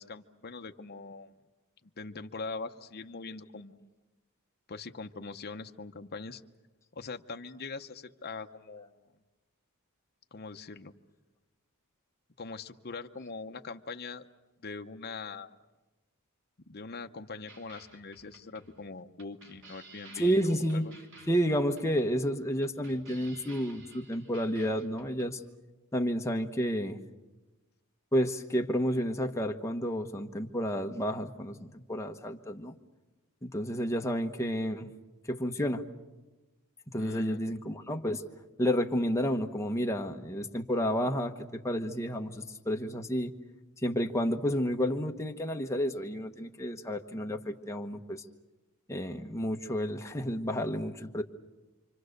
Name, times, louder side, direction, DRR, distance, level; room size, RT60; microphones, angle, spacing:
voice 1, 0.0-1.3 2.0-3.8 4.7-6.4 6.9-9.0 10.3-10.9 12.4-14.3 14.6-15.6 16.7-20.9 36.9-37.4, left 4 dB, 45° left, 5 dB, 0.9 m, -42 dB
sound 1, 17.5-25.3, right 3 dB, 60° right, 3.1 m, -54 dB
voice 2, 20.2-20.9 21.3-25.4 25.9-27.0 28.1-32.7 33.4-34.9 35.3-35.8 36.9-38.2 38.6-43.3 43.8-48.2 48.9-51.2, equal, 15° left, 3 dB, 1.2 m, -31 dB
28.5 x 25.0 x 6.6 m, 1.1 s
head